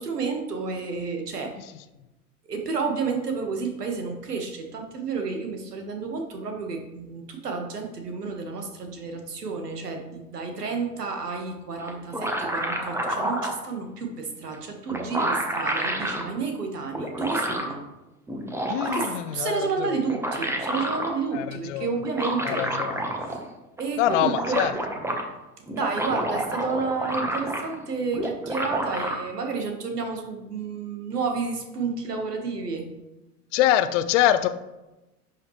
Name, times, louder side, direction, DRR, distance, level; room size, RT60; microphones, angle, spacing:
voice 1, 0.0-1.6 2.4-17.8 18.8-22.7 23.8-24.7 25.7-32.9, right 4 dB, 80° right, 4 dB, 1.6 m, -31 dB
sound 1, 11.9-13.6 14.5-14.6 14.9-16.2 16.9-17.7 18.3-19.3 19.9-21.1 22.0-23.5 23.8-23.9 24.1-25.2 25.7-27.8 28.1-29.2, right 1 dB, 5° right, 1.1 m, -29 dB
voice 2, 18.7-20.0 21.3-21.9 22.4-23.0 24.0-24.7 33.5-34.5, left 11 dB, 50° left, 12 dB, 0.7 m, -24 dB
11.0 x 5.7 x 3.2 m, 1.0 s
figure-of-eight pair, 85°, 47 cm